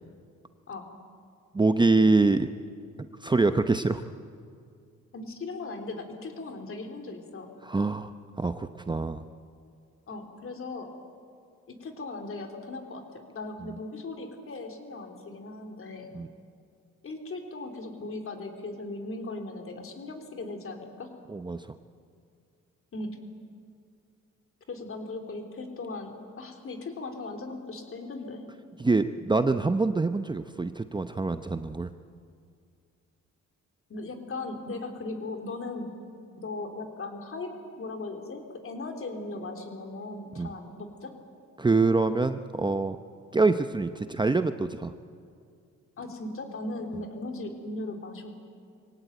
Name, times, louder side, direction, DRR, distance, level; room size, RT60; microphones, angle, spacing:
voice 1, 1.5-2.5 3.2-4.0 7.6-9.2 16.1-16.3 21.3-21.7 28.8-31.9 40.4-40.5 41.6-43.0 43.3-44.9, right 3 dB, 15° right, 9 dB, 0.7 m, -25 dB
voice 2, 5.1-7.5 10.1-10.9 11.7-16.1 17.0-21.1 22.9-23.2 24.7-28.5 33.9-35.9 36.4-37.5 37.8-41.1 46.0-48.3, left 2 dB, 45° left, 4 dB, 3.6 m, -38 dB
23.0 x 17.5 x 9.1 m, 2.3 s
cardioid pair, 90°, 30 cm